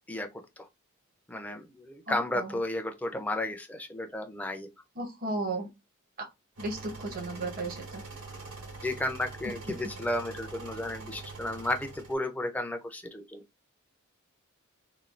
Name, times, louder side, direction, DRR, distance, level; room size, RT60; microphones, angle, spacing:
voice 1, 1.3-4.7 8.8-13.4, left 1 dB, 5° left, 0.4 m, -33 dB
voice 2, 2.1-2.5 5.0-5.7 6.2-6.3 6.6-8.0, right 2 dB, 45° right, 0.8 m, -34 dB
sound 1, 6.6-12.1, right 3 dB, 80° right, 1.6 m, -44 dB
3.1 x 2.3 x 2.4 m
head